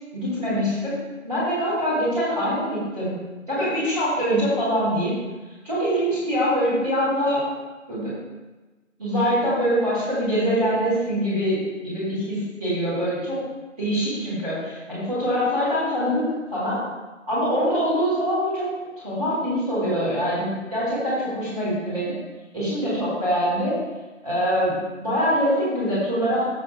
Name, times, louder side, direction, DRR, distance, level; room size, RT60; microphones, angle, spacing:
voice 1, 0.1-0.9 1.2-3.2 3.5-5.1 5.6-7.4 7.9-8.1 9.0-13.4 13.8-16.8 17.3-18.7 19.0-22.1 22.5-23.8 24.2-26.5, equal, 5° right, -12 dB, 1.2 m, -24 dB
14.0 x 5.5 x 2.3 m, 1.2 s
figure-of-eight pair, 160°, 39 cm